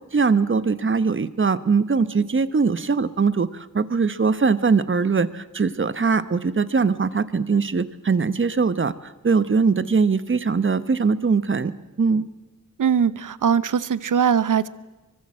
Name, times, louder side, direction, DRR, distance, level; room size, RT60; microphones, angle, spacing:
voice 1, 0.1-11.7 12.0-12.2, right 5 dB, 40° right, 14 dB, 1.1 m, -21 dB
voice 2, 12.8-14.7, right 7 dB, 75° right, 17 dB, 0.9 m, -21 dB
24.0 x 23.0 x 7.5 m, 1.1 s
wide cardioid pair, 120°, 31 cm